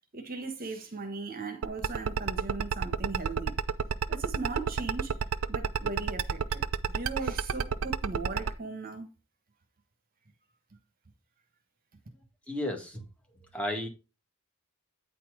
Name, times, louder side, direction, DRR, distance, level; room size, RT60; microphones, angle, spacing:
voice 1, 0.1-3.6 4.1-5.1 5.5-9.1, right 3 dB, 40° right, 1.2 m, -38 dB
sound 1, 1.6-8.5, right 6 dB, 75° right, 0.5 m, -29 dB
voice 2, 12.5-13.0 13.5-13.9, left 1 dB, 5° left, 1.9 m, -33 dB
9.0 x 4.3 x 4.8 m
head